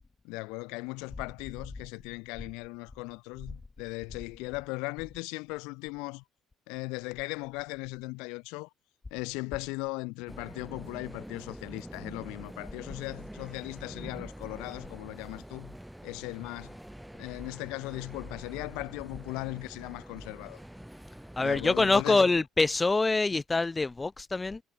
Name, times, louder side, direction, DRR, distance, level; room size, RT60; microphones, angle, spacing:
voice 1, 0.2-6.2 6.7-8.7 9.1-15.8 16.0-16.8 17.1-20.6 21.4-22.2, left 27 dB, 80° left, 2.1 m, -38 dB
sound 1, 10.3-22.0, equal, 5° right, 1.3 m, -45 dB
voice 2, 21.4-24.6, left 3 dB, 20° left, 0.7 m, -25 dB
hypercardioid pair, 70°, 0 cm